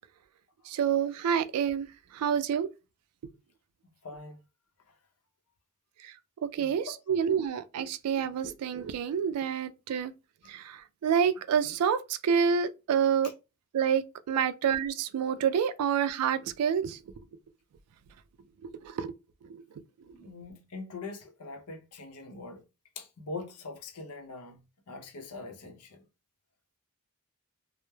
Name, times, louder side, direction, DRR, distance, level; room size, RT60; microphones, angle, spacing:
voice 1, 0.7-1.9 2.1-2.7 6.4-10.1 10.5-13.3 13.7-14.0 14.3-17.0 18.8-19.1 19.5-19.6, right 7 dB, 85° right, 0.3 m, -28 dB
voice 2, 4.0-4.4 6.6-6.9 9.4-9.5 13.2-13.3 14.3-14.4 20.1-22.6 23.0-24.6 24.9-26.0, left 3 dB, 90° left, 0.6 m, -42 dB
2.2 x 2.0 x 3.0 m
head